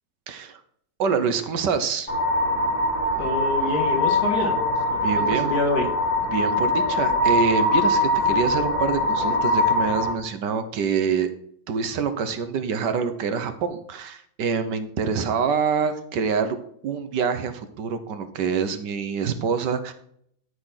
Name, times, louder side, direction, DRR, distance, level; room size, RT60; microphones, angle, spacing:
voice 1, 0.3-0.6 1.0-2.1 5.0-5.5 6.3-11.3 11.7-16.6 16.8-19.9, right 6 dB, 70° right, 10 dB, 1.4 m, -26 dB
sound 1, 2.1-10.1, left 1 dB, 30° left, 2.0 m, -22 dB
voice 2, 3.2-4.6 4.9-5.9, left 3 dB, 55° left, 1 dB, 2.5 m, -26 dB
12.5 x 4.3 x 5.8 m, 0.67 s
omnidirectional pair, 2.1 m